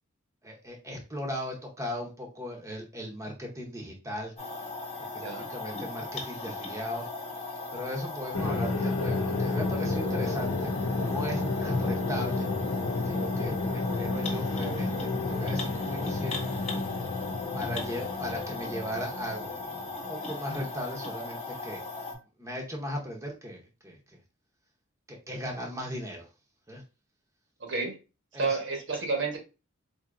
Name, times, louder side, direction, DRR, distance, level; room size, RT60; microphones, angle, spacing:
voice 1, 0.4-4.3 5.1-7.1 7.7-12.5 13.0-16.4 17.5-19.8 20.1-21.8 22.4-24.2 25.1-26.3 26.7-26.8 28.3-28.6, equal, 15° right, 0.7 m, -37 dB
sound 1, 4.4-22.1, left 3 dB, 35° left, 1.0 m, -38 dB
sound 2, 8.3-20.4, left 3 dB, 80° left, 0.6 m, -31 dB
voice 2, 27.6-28.0 28.3-29.4, right 4 dB, 65° right, 1.1 m, -30 dB
4.6 x 2.7 x 2.5 m
head